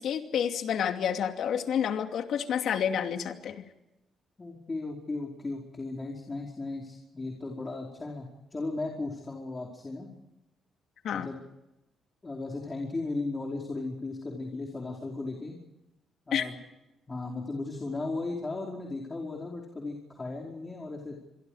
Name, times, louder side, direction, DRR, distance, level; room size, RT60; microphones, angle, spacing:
voice 1, 0.0-3.6 11.0-11.3 16.3-16.5, left 8 dB, 70° left, 6 dB, 2.6 m, -29 dB
voice 2, 4.4-10.1 11.1-11.4 12.2-15.6 16.3-16.6 17.1-21.2, left 3 dB, 25° left, -1 dB, 4.9 m, -36 dB
26.5 x 23.0 x 5.0 m, 0.94 s
cardioid pair, 90°, 0 cm